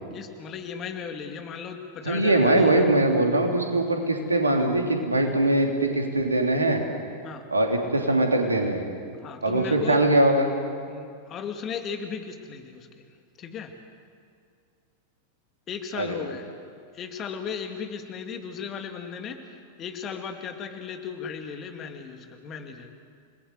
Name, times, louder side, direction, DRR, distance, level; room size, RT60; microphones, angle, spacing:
voice 1, 0.1-2.9 7.2-7.4 9.2-10.0 10.9-12.9 13.4-13.7 15.7-16.5 16.9-22.9, left 6 dB, 30° left, 5 dB, 2.4 m, -36 dB
voice 2, 2.0-6.8 7.5-8.8 9.4-10.5 15.9-16.2, right 1 dB, 80° right, 3 dB, 3.1 m, -22 dB
29.0 x 20.0 x 8.0 m, 2.3 s
figure-of-eight pair, 90°, 0 cm